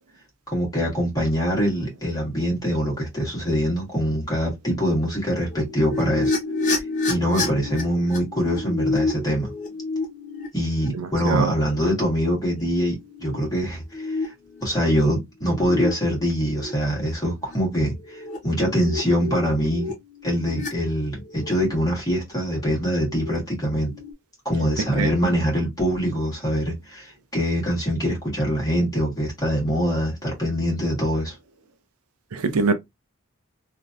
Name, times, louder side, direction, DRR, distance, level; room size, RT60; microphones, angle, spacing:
voice 1, 0.5-6.4 7.1-9.5 10.5-14.3 14.6-19.9 20.2-23.9 24.4-31.4, equal, 15° left, 1.5 m, -24 dB
sound 1, 5.3-11.7 12.4-12.6 13.0-13.4 13.9-15.0 15.5-15.9 16.4-16.7 17.4-17.5 17.9-20.7 21.1-21.5 22.9-23.4 23.7-24.1, left 3 dB, 35° left, 1.1 m, -30 dB
voice 2, 10.9-11.5 25.0-25.1 32.3-32.7, right 4 dB, 90° right, 0.5 m, -23 dB
3.1 x 2.5 x 2.5 m
head